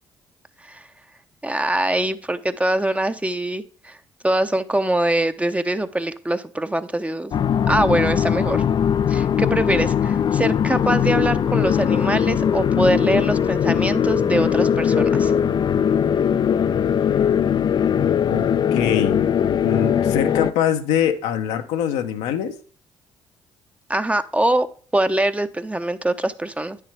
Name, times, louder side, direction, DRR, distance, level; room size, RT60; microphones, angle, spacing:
voice 1, 1.4-4.0 4.2-7.3 7.7-8.6 9.1-15.3 23.9-24.7 24.9-26.8, right 1 dB, 10° right, 0.7 m, -23 dB
sound 1, 7.3-20.5, left 8 dB, 40° left, 0.4 m, -20 dB
voice 2, 18.3-19.2 19.6-22.6, left 9 dB, 75° left, 0.8 m, -23 dB
9.5 x 6.6 x 3.4 m
hypercardioid pair, 50°, 11 cm